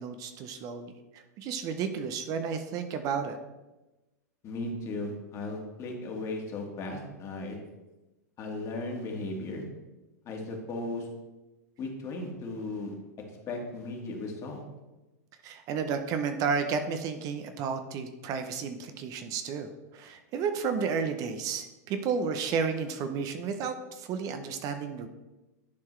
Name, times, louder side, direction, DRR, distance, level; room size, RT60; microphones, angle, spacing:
voice 1, 0.0-3.4 15.4-25.1, right 6 dB, 40° right, 7 dB, 0.7 m, -32 dB
voice 2, 4.4-7.6 8.4-9.6 10.3-11.1 11.8-12.9 13.5-14.6, left 2 dB, 35° left, 1 dB, 1.8 m, -36 dB
10.5 x 4.6 x 3.2 m, 1.1 s
hypercardioid pair, 110°, 9 cm